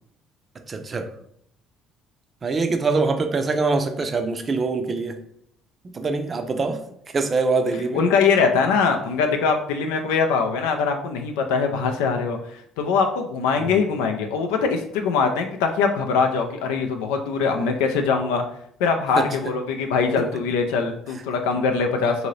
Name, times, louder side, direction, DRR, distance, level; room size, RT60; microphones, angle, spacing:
voice 1, 0.7-1.1 2.4-5.2 5.8-6.8 7.1-8.0 13.6-13.7 19.2-19.3, right 3 dB, 35° right, 7 dB, 0.5 m, -24 dB
voice 2, 7.9-18.4 18.8-22.3, left 5 dB, 85° left, 4 dB, 0.4 m, -22 dB
2.7 x 2.6 x 3.1 m, 0.68 s
hypercardioid pair, 65°, 0 cm